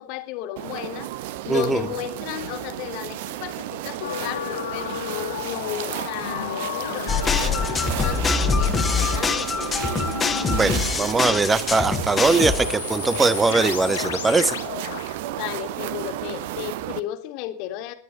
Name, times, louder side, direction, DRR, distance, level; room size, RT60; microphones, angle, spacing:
voice 1, 0.0-9.8 15.3-17.9, left 12 dB, 45° left, 9 dB, 2.4 m, -34 dB
sound 1, 0.6-17.0, right 14 dB, 50° right, 1.0 m, -32 dB
voice 2, 1.5-1.8 10.5-14.5, right 3 dB, 10° right, 16 dB, 1.3 m, -21 dB
sound 2, 4.0-10.9 11.6-16.1 16.5-16.6, left 11 dB, 60° left, 1.4 m, -34 dB
sound 3, 7.1-12.6, left 4 dB, 15° left, 1.9 m, -24 dB
19.0 x 11.5 x 5.6 m, 0.44 s
figure-of-eight pair, 90°, 0 cm